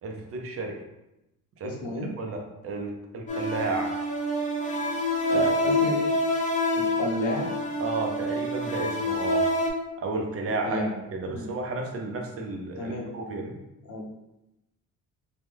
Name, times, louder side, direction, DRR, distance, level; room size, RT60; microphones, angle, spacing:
voice 1, 0.0-0.8 1.6-1.8 2.2-3.9 5.3-5.7 7.8-9.5 10.0-13.6, right 3 dB, 45° right, 2 dB, 0.5 m, -32 dB
voice 2, 1.6-2.1 5.3-6.0 6.7-7.5 10.6-11.0 11.3-11.5 12.8-13.4 13.8-14.1, left 1 dB, 60° left, -1 dB, 0.7 m, -32 dB
sound 1, 3.3-9.7, left 1 dB, 25° left, 0.4 m, -27 dB
3.1 x 2.1 x 3.4 m, 0.93 s
cardioid pair, 150°, 33 cm